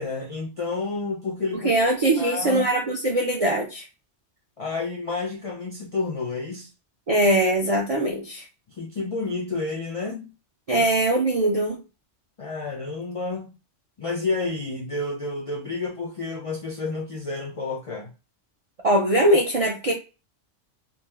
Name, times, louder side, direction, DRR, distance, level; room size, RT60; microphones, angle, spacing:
voice 1, 0.0-1.7 2.2-2.7 4.6-6.7 8.8-10.3 10.8-10.9 12.4-13.5 14.0-18.1, left 3 dB, 60° left, 0.3 m, -30 dB
voice 2, 1.5-3.9 7.1-8.4 10.7-11.8 18.8-19.9, right 1 dB, 60° right, 0.3 m, -21 dB
2.6 x 2.0 x 3.2 m
omnidirectional pair, 1.3 m